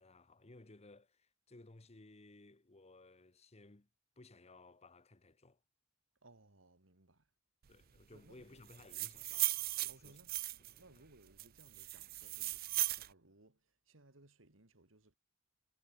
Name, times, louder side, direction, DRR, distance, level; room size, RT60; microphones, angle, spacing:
voice 1, 0.0-3.9 4.2-5.6 7.7-10.2 10.6-10.8, left 2 dB, 30° left, 1.1 m, -59 dB
voice 2, 6.2-7.3 8.1-8.6 9.9-15.2, right 2 dB, 75° right, 2.5 m, -64 dB
sound 1, 8.7-10.8 11.4-13.1, right 18 dB, 50° right, 0.4 m, -37 dB
head